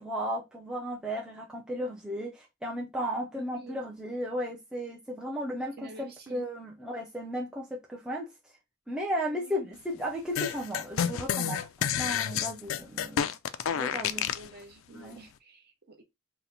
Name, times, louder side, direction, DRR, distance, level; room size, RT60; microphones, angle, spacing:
voice 1, 0.0-8.3 8.9-13.3 13.8-14.3 14.9-15.2, equal, 5° right, 0.4 m, -35 dB
voice 2, 3.4-3.9 5.8-6.5 9.3-9.7 13.7-16.0, right 3 dB, 50° right, 0.7 m, -49 dB
sound 1, 10.3-14.5, left 9 dB, 70° left, 0.3 m, -30 dB
2.8 x 2.1 x 3.9 m
head